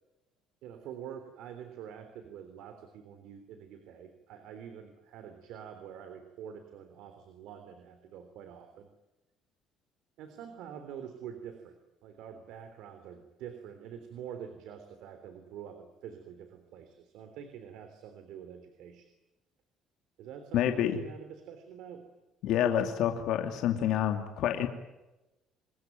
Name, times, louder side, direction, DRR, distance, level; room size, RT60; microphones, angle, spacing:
voice 1, 0.6-8.9 10.2-19.1 20.2-22.1, right 8 dB, 75° right, 8 dB, 3.4 m, -46 dB
voice 2, 20.5-21.0 22.4-24.7, left 10 dB, 70° left, 5 dB, 2.7 m, -28 dB
27.0 x 21.5 x 9.3 m, 1.0 s
cardioid pair, 130°, 0 cm